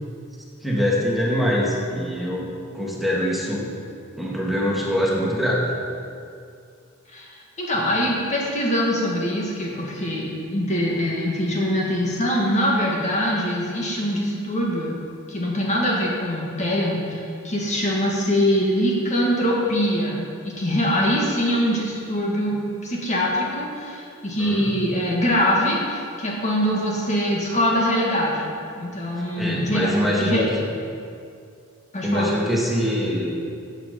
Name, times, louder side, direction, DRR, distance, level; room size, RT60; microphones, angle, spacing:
voice 1, 0.6-3.7 4.2-5.7 7.8-7.9 24.4-24.7 29.2-30.4 32.0-33.3, equal, ahead, -5 dB, 2.1 m, -24 dB
voice 2, 7.1-15.0 15.3-29.9 30.2-30.4 31.9-32.3, equal, 35° left, -3 dB, 1.7 m, -23 dB
14.5 x 8.1 x 5.3 m, 2.4 s
head